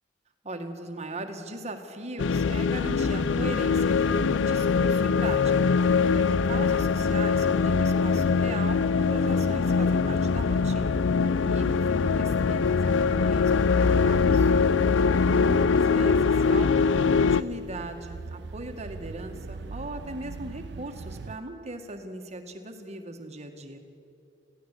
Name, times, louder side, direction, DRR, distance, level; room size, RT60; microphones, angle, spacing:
voice 1, 0.4-5.7 6.1-11.0 11.4-14.5 15.3-23.8, right 2 dB, 35° right, 5 dB, 1.8 m, -39 dB
sound 1, 2.2-17.4, left 5 dB, 75° left, 0.5 m, -23 dB
sound 2, 2.9-21.4, right 4 dB, 65° right, 0.5 m, -41 dB
21.0 x 15.5 x 8.4 m, 2.5 s
head